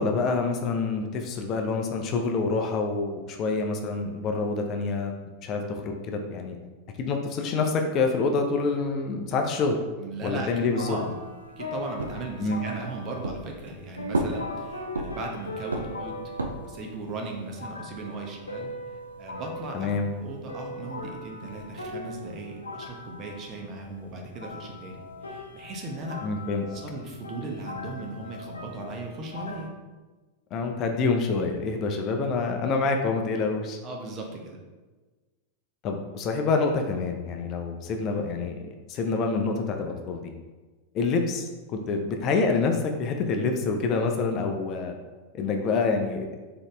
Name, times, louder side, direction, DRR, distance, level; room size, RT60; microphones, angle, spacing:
voice 1, 0.0-5.1 5.4-6.6 7.0-9.8 10.2-11.0 12.4-12.6 19.7-20.1 26.2-26.7 30.5-33.8 35.8-38.6 38.9-40.2 40.9-44.9 45.3-46.3, left 4 dB, 35° left, 3 dB, 0.5 m, -27 dB
voice 2, 10.0-10.5 10.8-11.2 11.6-16.3 16.6-18.7 19.2-19.9 20.2-26.2 26.7-29.7 33.8-34.6, right 2 dB, 35° right, 1 dB, 0.9 m, -37 dB
sound 1, 10.7-29.7, left 1 dB, 80° left, 0.6 m, -40 dB
sound 2, 12.0-12.8 13.2-13.8 14.1-15.3 15.7-16.8, right 2 dB, 75° right, 0.5 m, -31 dB
3.9 x 3.8 x 3.3 m, 1.3 s
figure-of-eight pair, 90°, 0 cm